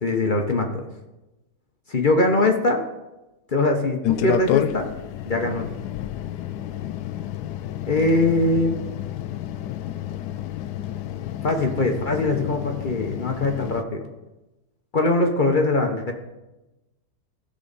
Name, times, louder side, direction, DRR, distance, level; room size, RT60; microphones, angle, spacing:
voice 1, 0.0-0.8 1.9-2.8 3.5-4.9 5.2-5.7 7.9-8.8 11.4-14.0 14.9-16.1, left 2 dB, 45° left, 2 dB, 0.6 m, -22 dB
sound 1, 4.0-13.8, left 11 dB, 75° left, 0.9 m, -30 dB
16.0 x 6.4 x 4.1 m, 1.0 s
omnidirectional pair, 2.2 m